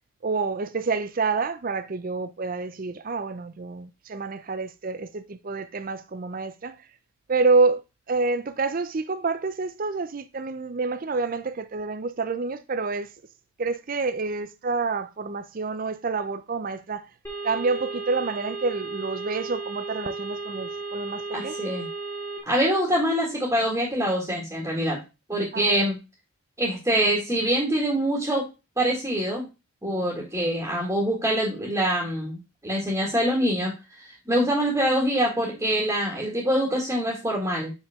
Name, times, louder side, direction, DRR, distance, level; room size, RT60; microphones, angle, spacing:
voice 1, 0.2-6.8 7.3-7.8 8.1-13.1 13.6-17.1 17.4-21.6 25.5-25.7, right 4 dB, 40° right, 0.5 m, -28 dB
sound 1, 17.2-22.4, right 4 dB, 15° left, 2.0 m, -34 dB
voice 2, 21.3-21.9 22.5-25.0 25.3-26.0 26.6-28.5 28.8-29.4 29.8-37.7, equal, 15° right, 1.9 m, -25 dB
6.0 x 5.2 x 3.6 m
head